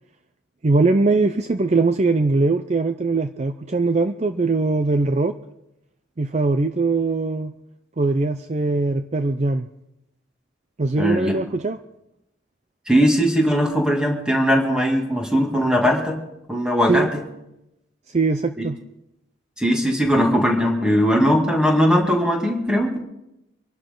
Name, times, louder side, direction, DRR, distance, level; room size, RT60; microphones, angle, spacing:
voice 1, 0.6-5.3 6.2-7.5 8.0-9.7 10.8-11.8 16.9-17.1 18.1-18.8, right 3 dB, 35° right, 9 dB, 0.5 m, -21 dB
voice 2, 11.0-11.3 12.9-16.2 16.5-17.1 19.6-23.0, equal, 5° right, 0 dB, 2.4 m, -19 dB
25.5 x 12.0 x 3.8 m, 0.88 s
head